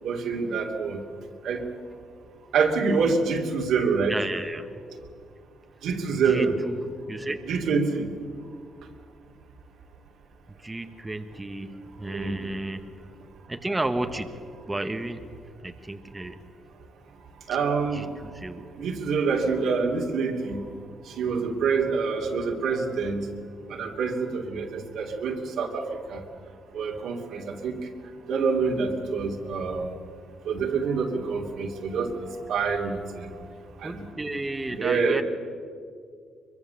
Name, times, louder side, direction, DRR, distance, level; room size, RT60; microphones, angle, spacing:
voice 1, 0.0-1.0 1.4-1.6 2.5-4.2 5.8-6.5 7.5-8.1 12.1-12.5 17.5-18.1 18.8-20.6 21.0-23.3 23.7-26.2 26.7-27.8 28.3-29.9 30.4-33.4 33.8-34.1 34.8-35.2, right 5 dB, 75° right, 0 dB, 2.8 m, -26 dB
voice 2, 4.1-4.7 6.1-7.4 10.6-12.9 13.5-15.3 15.6-16.4 17.9-18.7 33.8-35.2, right 2 dB, 15° right, 7 dB, 1.3 m, -33 dB
23.0 x 22.5 x 7.1 m, 2.2 s
cardioid pair, 90°, 0 cm